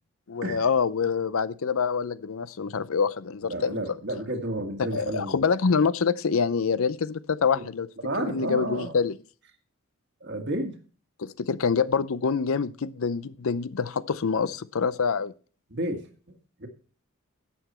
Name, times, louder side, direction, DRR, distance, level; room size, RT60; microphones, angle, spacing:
voice 1, 0.3-3.8 4.8-7.9 8.2-9.1 11.2-15.3, left 5 dB, 65° left, 0.5 m, -26 dB
voice 2, 3.5-5.4 7.6-7.7 8.0-9.0 10.2-10.8 15.7-16.1 16.6-16.7, right 1 dB, 50° right, 1.8 m, -31 dB
11.5 x 8.2 x 4.3 m
head